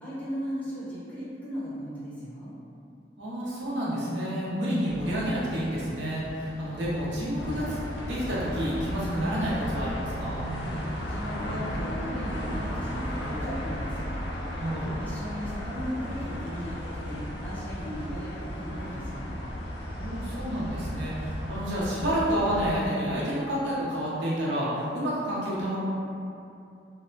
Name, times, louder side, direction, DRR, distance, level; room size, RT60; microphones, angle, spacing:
voice 1, 0.0-2.6 10.6-10.8 11.1-14.1 15.0-19.4, equal, 10° left, -10 dB, 0.6 m, -37 dB
voice 2, 3.2-7.8 8.1-10.4 14.6-14.9 19.9-25.8, equal, 80° right, -8 dB, 0.7 m, -29 dB
sound 1, 4.9-11.3, equal, 25° right, 0.9 m, -44 dB
sound 2, 7.4-22.9, equal, 65° left, 0.4 m, -34 dB
2.7 x 2.2 x 2.5 m, 2.6 s
head